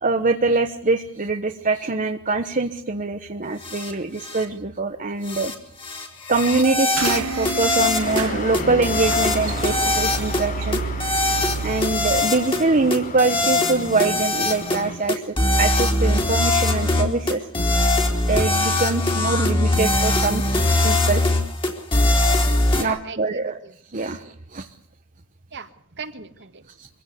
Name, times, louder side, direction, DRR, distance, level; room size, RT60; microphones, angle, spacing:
voice 1, 0.0-5.5 6.3-10.8 11.6-17.5 18.3-21.2 22.8-23.6 23.9-24.7 26.8-26.9, right 3 dB, 40° right, 5 dB, 1.1 m, -24 dB
sound 1, 3.6-3.9 4.2-4.4 5.2-5.5 5.8-8.3 8.5-10.5 10.7-12.6 12.9-14.8 15.1-22.8, left 2 dB, 25° left, 3.6 m, -22 dB
sound 2, 6.9-12.2, right 4 dB, 80° right, 1.0 m, -30 dB
sound 3, 8.0-15.0, left 1 dB, 40° left, 6.0 m, -32 dB
voice 2, 22.8-24.0 25.5-26.6, right 5 dB, 55° right, 9 dB, 1.9 m, -38 dB
24.5 x 16.0 x 8.4 m, 0.63 s
head